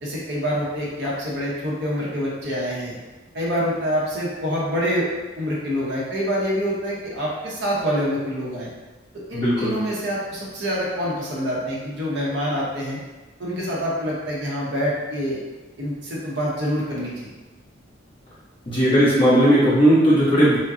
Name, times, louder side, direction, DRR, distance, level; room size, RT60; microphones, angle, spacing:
voice 1, 0.0-2.9 3.3-5.1 5.4-8.7 9.3-13.0 13.4-15.4 15.8-17.3, equal, 55° right, -5 dB, 0.9 m, -26 dB
voice 2, 9.3-9.7 18.7-20.6, equal, 25° left, -10 dB, 1.2 m, -17 dB
4.9 x 2.2 x 2.7 m, 1.2 s
head